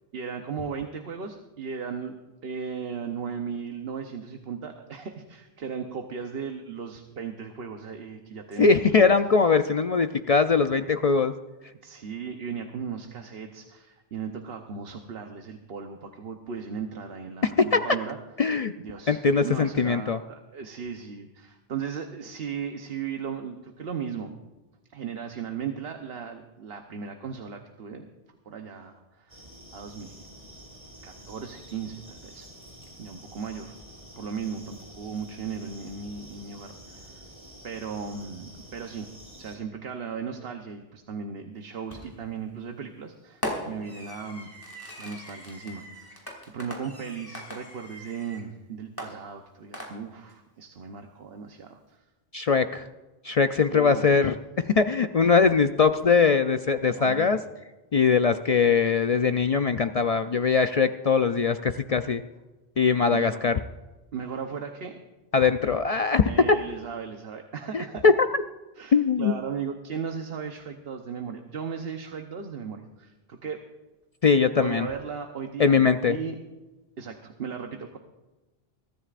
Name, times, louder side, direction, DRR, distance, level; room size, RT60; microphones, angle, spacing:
voice 1, 0.1-2.2 2.4-9.1 11.8-18.2 18.8-24.3 24.9-28.0 28.4-29.4 29.7-30.2 31.0-32.5 33.0-33.8 34.2-37.2 37.6-39.1 39.4-44.5 45.0-52.0 53.7-54.1 57.0-57.3 63.1-63.4 64.1-65.0 66.2-68.0 68.8-73.6 74.6-75.7 76.1-76.3 77.0-78.0, right 6 dB, 70° right, 4 dB, 1.1 m, -36 dB
voice 2, 8.6-11.3 17.4-17.8 18.4-18.7 19.1-20.2 52.3-52.9 53.2-57.4 57.9-62.2 62.8-63.6 65.3-66.3 67.7-68.3 68.9-69.3 74.2-74.9 75.6-76.2, left 5 dB, 50° left, 8 dB, 0.4 m, -21 dB
sound 1, 29.3-39.6, equal, 40° right, 4.1 m, -48 dB
Fireworks, 41.9-42.3 43.4-48.5 49.0-50.3, left 1 dB, 20° left, 2.6 m, -39 dB
22.5 x 13.5 x 2.5 m, 1.1 s
omnidirectional pair, 1.1 m